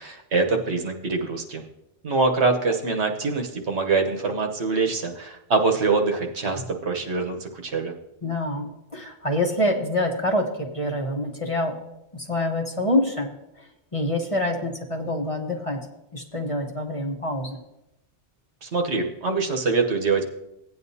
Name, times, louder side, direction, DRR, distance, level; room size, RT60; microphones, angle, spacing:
voice 1, 0.0-1.6 2.0-7.9 18.6-20.3, right 4 dB, 70° right, 2 dB, 1.3 m, -24 dB
voice 2, 8.2-11.8 12.1-13.3 13.9-15.8 16.1-17.6, left 1 dB, 30° left, 1 dB, 1.1 m, -26 dB
15.5 x 9.1 x 2.8 m, 0.89 s
omnidirectional pair, 1.2 m